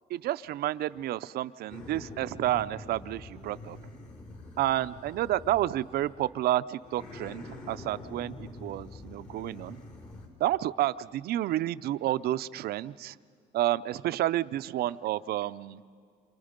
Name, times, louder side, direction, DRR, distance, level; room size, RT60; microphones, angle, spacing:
voice 1, 0.1-3.8 4.6-9.8 10.4-13.2 13.5-15.8, right 14 dB, 65° right, 14 dB, 0.6 m, -30 dB
sound 1, 1.7-6.3 6.8-10.3, left 2 dB, 50° left, 4.9 m, -45 dB
28.5 x 27.0 x 5.2 m, 2.2 s
cardioid pair, 110°, 17 cm